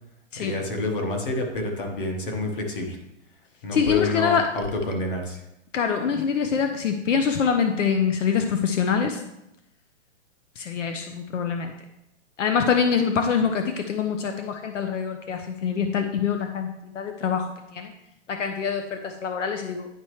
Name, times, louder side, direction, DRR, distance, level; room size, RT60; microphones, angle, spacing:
voice 1, 0.4-3.0 3.6-5.4, left 3 dB, 45° left, 3 dB, 1.3 m, -28 dB
voice 2, 3.7-4.5 5.7-9.2 10.6-11.7 12.4-17.9 18.3-19.9, left 6 dB, 80° left, 6 dB, 0.8 m, -25 dB
10.0 x 4.4 x 3.1 m, 0.85 s
hypercardioid pair, 180°, 37 cm